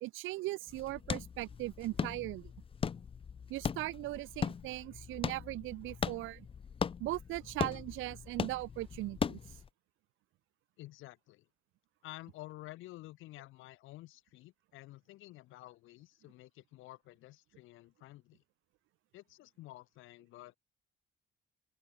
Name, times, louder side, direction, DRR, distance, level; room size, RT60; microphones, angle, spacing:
voice 1, 0.0-2.5 3.5-6.5 7.0-9.4, right 18 dB, 85° right, 0.4 m, -39 dB
sound 1, 0.7-9.7, left 6 dB, 30° left, 0.4 m, -39 dB
voice 2, 10.8-11.5 12.0-18.4 19.1-20.5, left 17 dB, 80° left, 0.5 m, -51 dB
open air
cardioid pair, 90°, 20 cm